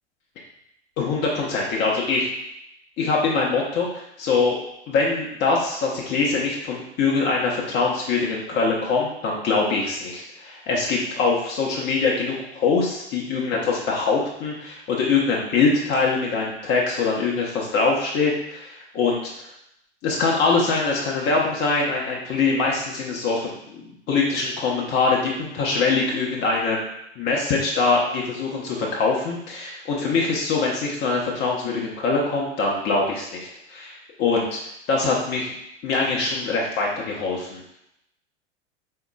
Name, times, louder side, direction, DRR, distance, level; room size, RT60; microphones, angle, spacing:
voice 1, 1.0-2.3 3.0-4.6 4.9-19.3 20.0-26.8 27.2-34.6 34.9-35.5 35.8-37.6, left 4 dB, 30° left, -2 dB, 0.8 m, -23 dB
4.6 x 3.6 x 2.3 m, 0.79 s
figure-of-eight pair, 85°, 35 cm